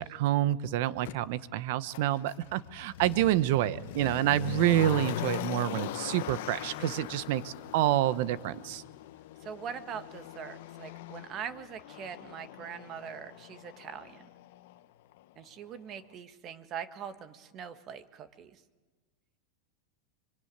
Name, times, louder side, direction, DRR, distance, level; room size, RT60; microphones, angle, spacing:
voice 1, 0.0-8.8, right 13 dB, 65° right, 15 dB, 1.0 m, -28 dB
Motor vehicle (road), 1.1-1.2 1.9-14.8 15.1-15.2, left 13 dB, 70° left, 1.0 m, -41 dB
voice 2, 9.4-14.3 15.4-18.6, right 8 dB, 40° right, 10 dB, 1.7 m, -42 dB
25.0 x 24.0 x 9.3 m, 1.4 s
hypercardioid pair, 120°, 0 cm